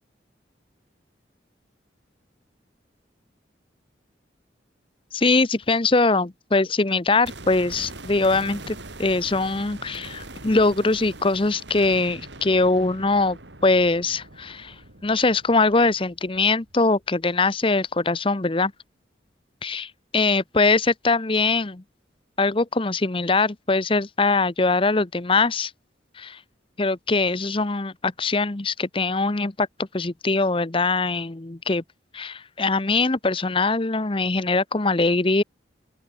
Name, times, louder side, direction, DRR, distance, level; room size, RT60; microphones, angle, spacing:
voice 1, 5.1-14.8 15.0-18.7 19.6-21.8 22.4-25.7 26.2-26.4 26.8-31.8 32.1-35.4, left 3 dB, 30° left, 0.8 m, -22 dB
sound 1, 7.2-17.3 17.5-17.6, right 2 dB, 70° right, 4.9 m, -42 dB
open air
head